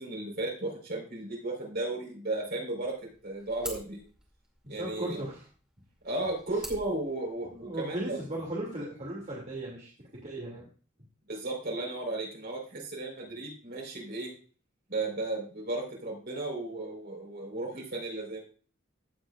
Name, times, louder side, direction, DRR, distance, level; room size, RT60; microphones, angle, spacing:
voice 1, 0.0-2.9 3.2-4.0 4.7-5.2 6.0-8.2 11.3-14.3 14.9-18.4, right 2 dB, 55° right, -1 dB, 4.0 m, -35 dB
sound 1, 2.8-7.9, right 1 dB, 5° right, 2.3 m, -48 dB
voice 2, 4.6-5.5 6.5-6.6 7.4-9.9 10.2-10.7, right 1 dB, 40° right, -4 dB, 2.4 m, -37 dB
16.0 x 7.9 x 2.4 m, 0.40 s
head